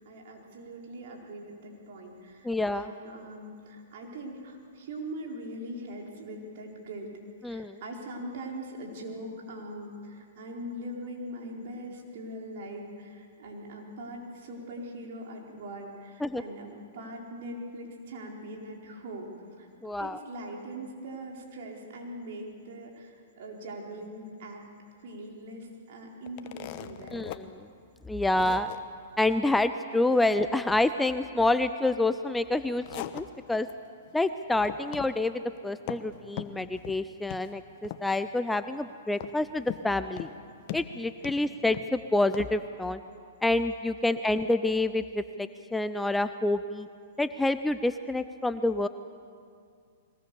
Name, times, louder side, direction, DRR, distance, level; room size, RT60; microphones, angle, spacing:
voice 1, 0.0-7.1 7.4-19.7 20.0-24.6 25.0-27.3 41.1-41.4 44.0-44.2, right 1 dB, 60° right, 0 dB, 4.5 m, -41 dB
voice 2, 2.4-2.9 7.4-7.8 16.2-16.4 19.8-20.2 27.1-27.6 28.1-28.7 29.2-33.7 34.1-40.3 40.7-43.0 43.4-46.9 47.2-48.9, left 2 dB, 5° left, 11 dB, 0.5 m, -28 dB
sound 1, 26.3-27.4 27.8-27.9 28.3-28.8 32.5-33.7 34.1-34.3 34.6-35.1 35.4-36.1 36.4-37.0 37.3-37.5 37.8-38.3 39.2-39.9 40.2-40.4 40.7-41.9 42.3-42.5, left 14 dB, 45° left, 1.1 m, -40 dB
22.0 x 19.0 x 7.1 m, 2.2 s
hypercardioid pair, 135°, 0 cm